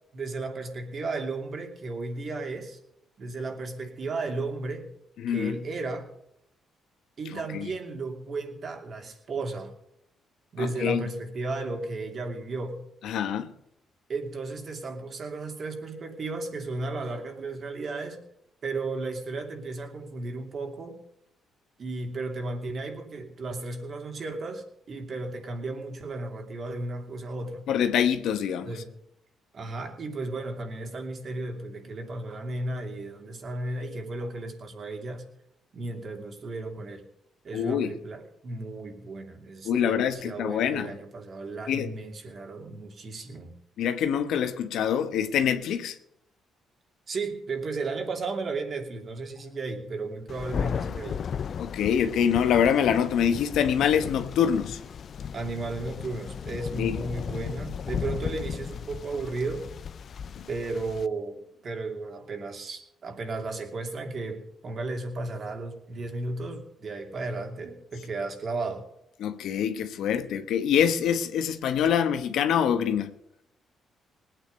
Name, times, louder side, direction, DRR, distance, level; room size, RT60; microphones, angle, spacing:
voice 1, 0.1-2.8 3.2-4.9 5.3-6.1 7.2-9.7 10.5-12.9 14.1-18.2 18.6-21.0 21.8-27.6 28.6-29.0 29.5-35.2 35.7-37.0 37.4-43.5 47.1-51.2 55.3-59.7 60.5-68.9, right 3 dB, 50° right, 2.8 m, -34 dB
voice 2, 5.2-5.6 7.5-7.7 10.6-11.0 13.0-13.5 27.7-28.7 37.5-37.9 39.6-40.9 41.7-41.9 43.8-45.9 51.6-54.8 56.7-57.0 60.4-60.5 69.2-73.1, left 8 dB, 80° left, 1.1 m, -25 dB
Thunder, 50.3-61.1, left 7 dB, 55° left, 0.5 m, -35 dB
19.0 x 9.1 x 5.3 m
cardioid pair, 90°, 0 cm